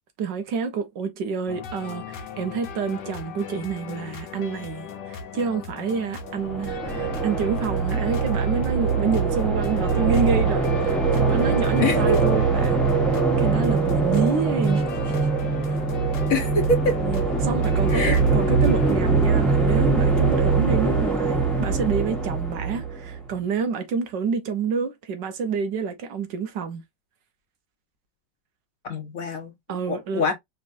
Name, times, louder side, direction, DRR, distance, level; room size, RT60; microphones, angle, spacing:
voice 1, 0.2-12.8 13.4-15.3 17.0-26.8 29.7-30.3, right 5 dB, 75° right, 1.6 m, -28 dB
sound 1, 1.5-19.0, left 7 dB, 70° left, 1.5 m, -37 dB
sound 2, 6.3-23.3, right 4 dB, ahead, 1.1 m, -22 dB
voice 2, 11.8-12.2 16.3-17.0 17.9-18.2 28.9-29.5 29.9-30.3, left 2 dB, 50° left, 1.3 m, -24 dB
5.1 x 3.0 x 2.6 m
omnidirectional pair, 2.0 m